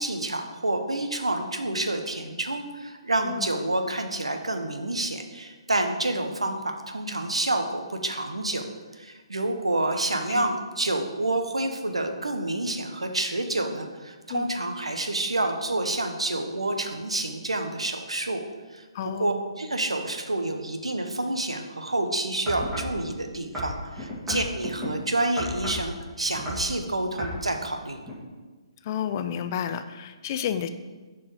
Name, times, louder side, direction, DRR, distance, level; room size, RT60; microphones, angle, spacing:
voice 1, 0.0-8.6 8.9-18.4 18.7-18.8 19.2-28.0, right 2 dB, 85° right, 6 dB, 0.8 m, -28 dB
voice 2, 18.9-19.4 24.3-24.5 28.8-30.7, left 9 dB, 35° left, 10 dB, 0.4 m, -31 dB
sound 1, 22.5-23.0 23.5-24.9 25.4-25.9 26.3-26.7 27.2-27.4 28.0-28.1, equal, 10° right, 2.3 m, -33 dB
7.1 x 4.7 x 4.8 m, 1.3 s
figure-of-eight pair, 135°, 3 cm